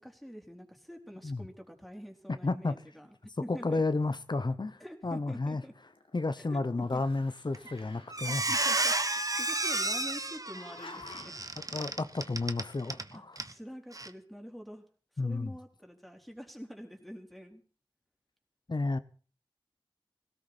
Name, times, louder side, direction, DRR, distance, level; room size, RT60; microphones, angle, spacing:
voice 1, 0.0-3.8 4.8-5.7 6.4-7.0 8.2-11.4 13.1-14.8 15.2-17.6, equal, ahead, 3.8 m, -46 dB
voice 2, 2.4-2.8 3.5-5.6 6.1-8.4 11.7-13.4 15.2-15.5 18.7-19.0, left 3 dB, 55° left, 1.0 m, -32 dB
Growling, 5.3-6.5 6.8-8.3 9.1-10.1 10.5-11.5, left 3 dB, 90° left, 2.1 m, -51 dB
Squeak, 7.5-7.8 8.1-13.1 13.4-13.5 13.9-14.1, right 2 dB, 40° right, 1.1 m, -31 dB
18.5 x 17.0 x 4.4 m
wide cardioid pair, 65°, 9 cm